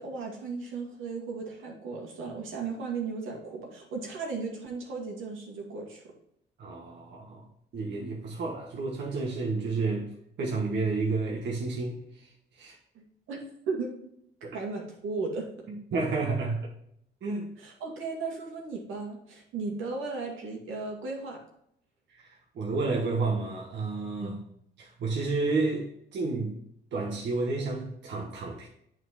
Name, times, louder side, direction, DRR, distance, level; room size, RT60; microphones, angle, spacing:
voice 1, 0.0-6.0 12.9-14.0 14.5-15.7 17.6-21.4 24.2-24.4, right 4 dB, 85° right, -1 dB, 2.2 m, -36 dB
voice 2, 6.6-7.4 7.7-10.1 10.4-12.0 12.6-12.7 14.4-14.6 15.7-16.7 17.2-17.5 22.1-22.3 22.5-24.4 24.8-26.5 26.9-28.7, right 3 dB, 65° right, -2 dB, 1.4 m, -30 dB
8.7 x 4.5 x 4.1 m, 0.71 s
cardioid pair, 90°, 20 cm